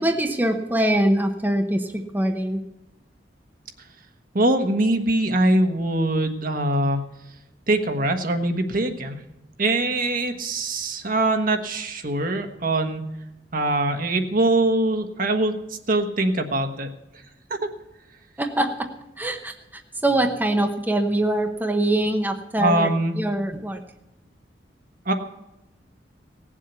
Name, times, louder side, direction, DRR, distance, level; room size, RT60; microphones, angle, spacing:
voice 1, 0.0-2.6 18.4-18.9 19.2-23.8, right 1 dB, 10° right, 4 dB, 0.9 m, -23 dB
voice 2, 4.3-7.0 7.7-9.2 9.6-13.0 13.5-15.5 15.9-16.9 17.5-17.7 22.6-23.2 25.1-25.2, right 2 dB, 50° right, 5 dB, 1.4 m, -22 dB
17.5 x 7.4 x 8.1 m, 0.94 s
head